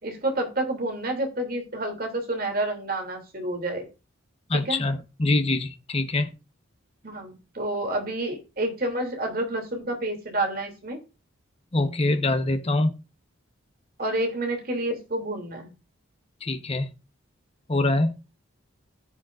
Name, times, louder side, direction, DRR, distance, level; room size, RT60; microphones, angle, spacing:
voice 1, 0.0-3.9 4.5-4.8 7.0-11.0 14.0-15.7, right 1 dB, 45° right, 2.9 m, -29 dB
voice 2, 4.5-6.3 11.7-12.9 16.4-16.9 17.7-18.2, left 2 dB, 30° left, 1.0 m, -24 dB
15.0 x 7.3 x 2.6 m
head